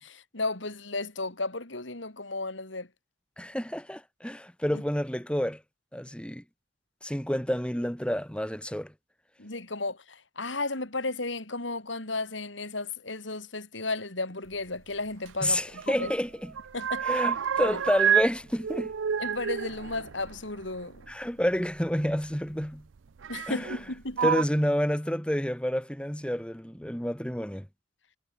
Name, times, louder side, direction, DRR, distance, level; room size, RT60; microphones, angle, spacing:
voice 1, 0.0-2.9 4.7-4.8 9.4-16.1 16.7-17.0 17.7-17.8 19.2-21.1 23.3-24.2, left 3 dB, 75° left, 4.4 m, -34 dB
voice 2, 3.4-5.6 5.9-6.4 7.0-8.9 15.4-16.5 17.0-18.9 21.1-22.8 23.5-23.8 24.2-27.7, equal, 5° left, 2.5 m, -29 dB
sound 1, 15.3-16.2 16.5-18.3 18.6-21.1 22.1-22.2 23.2-23.8 24.1-24.4, right 8 dB, 85° right, 0.5 m, -29 dB
head